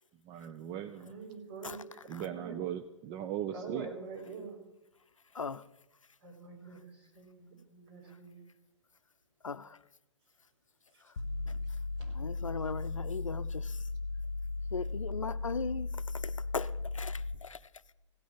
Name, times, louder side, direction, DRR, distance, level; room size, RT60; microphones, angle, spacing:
voice 1, 0.3-1.1 2.1-3.9, right 10 dB, 25° right, 0.5 m, -38 dB
voice 2, 1.0-2.5 3.5-4.6 6.2-8.4 12.0-12.1, right 5 dB, 55° right, 4.7 m, -45 dB
voice 3, 9.4-9.8 12.1-13.8 14.7-17.6, left 5 dB, 80° left, 0.6 m, -38 dB
sound 1, 11.2-17.3, left 3 dB, 55° left, 1.0 m, -36 dB
16.0 x 6.2 x 9.2 m
figure-of-eight pair, 115°, 16 cm